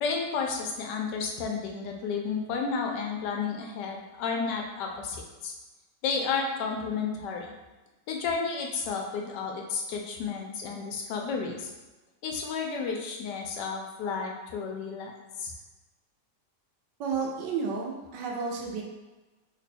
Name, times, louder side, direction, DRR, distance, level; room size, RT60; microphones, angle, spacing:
voice 1, 0.0-5.5 6.0-7.5 8.1-11.7 12.2-15.1 15.4-15.5, left 5 dB, 80° left, 1 dB, 1.2 m, -32 dB
voice 2, 17.0-18.8, right 5 dB, 85° right, 0 dB, 1.3 m, -31 dB
3.3 x 2.2 x 4.1 m, 1.1 s
omnidirectional pair, 1.8 m